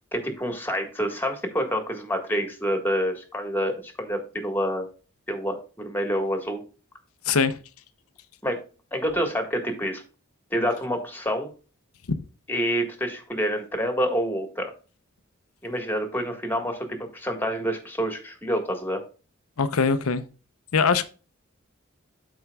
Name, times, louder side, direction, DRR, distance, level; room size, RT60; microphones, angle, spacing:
voice 1, 0.1-4.8 5.3-6.6 8.4-8.6 8.9-10.0 10.5-11.5 12.5-14.7 15.6-19.0, equal, 10° left, 1.6 m, -27 dB
voice 2, 7.2-7.6 19.6-20.3 20.7-21.0, left 5 dB, 85° left, 0.7 m, -22 dB
13.5 x 4.5 x 2.3 m
head